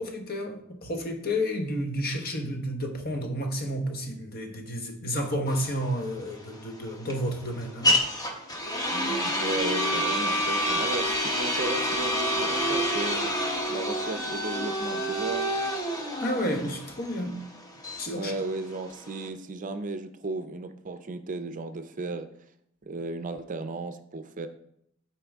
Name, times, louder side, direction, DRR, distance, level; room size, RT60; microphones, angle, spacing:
voice 1, 0.0-8.3 16.2-17.4 18.0-18.3, equal, 50° left, 1.1 m, -31 dB
sound 1, 5.5-19.3, equal, 20° left, 0.9 m, -28 dB
voice 2, 8.9-13.3 13.7-15.4 18.2-22.3 22.9-24.5, right 3 dB, 40° right, 0.5 m, -35 dB
12.5 x 4.6 x 3.5 m
head